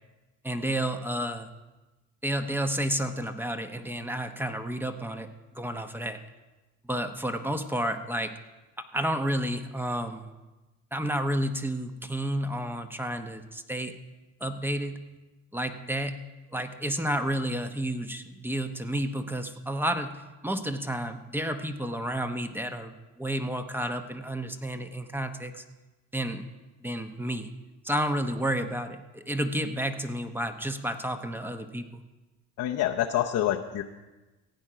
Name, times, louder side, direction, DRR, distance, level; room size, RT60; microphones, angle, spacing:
voice 1, 0.4-1.5 2.2-5.3 5.5-6.2 6.8-8.3 8.9-10.3 10.9-13.9 14.4-15.0 15.5-16.2 16.5-25.6 26.1-26.4 26.8-27.5 27.8-31.9, right 1 dB, 5° right, 8 dB, 0.9 m, -31 dB
voice 2, 32.6-33.8, left 12 dB, 60° left, 1 dB, 0.8 m, -27 dB
15.5 x 8.9 x 5.0 m, 1.1 s
cardioid pair, 95°, 36 cm